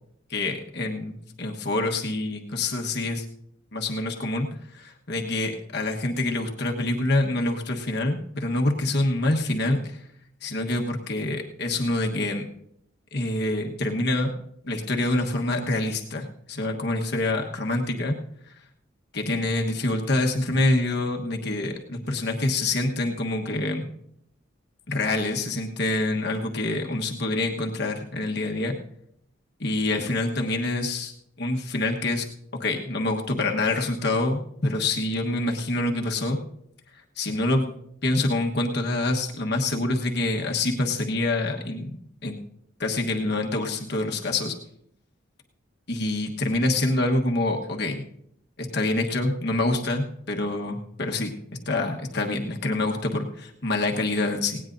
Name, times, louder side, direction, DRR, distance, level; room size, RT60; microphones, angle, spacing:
voice 1, 0.3-3.2 3.7-4.5 4.7-10.0 10.4-12.5 13.1-14.3 14.6-18.2 19.1-23.9 24.9-28.7 29.6-31.1 31.4-32.3 32.6-36.4 37.2-37.8 38.0-42.0 42.2-42.4 42.8-44.5 45.9-48.0 48.6-51.3 51.7-54.6, left 2 dB, 55° left, 2 dB, 1.3 m, -26 dB
18.5 x 17.5 x 2.6 m, 0.73 s
head